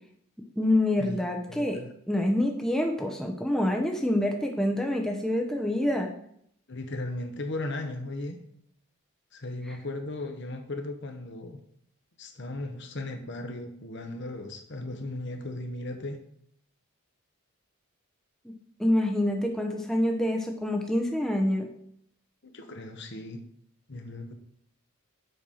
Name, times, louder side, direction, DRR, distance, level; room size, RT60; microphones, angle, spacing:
voice 1, 0.6-1.8 2.1-6.1 9.7-9.8 18.8-21.7, left 1 dB, ahead, 2 dB, 0.8 m, -26 dB
voice 2, 1.5-1.9 6.7-8.4 9.3-11.6 12.2-16.2 22.4-23.4 23.9-24.3, left 2 dB, 55° left, 6 dB, 1.0 m, -36 dB
7.7 x 5.4 x 5.6 m, 0.68 s
head